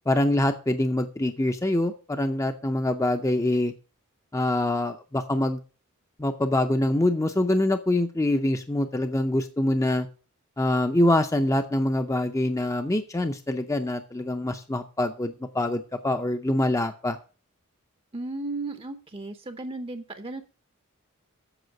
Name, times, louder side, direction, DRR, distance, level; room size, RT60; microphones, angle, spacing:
voice 1, 0.1-3.7 4.3-5.6 6.2-10.1 10.6-17.2, left 1 dB, 15° left, 7 dB, 0.5 m, -25 dB
voice 2, 18.1-20.4, right 2 dB, 25° right, 9 dB, 0.6 m, -35 dB
8.0 x 6.6 x 7.6 m, 0.38 s
head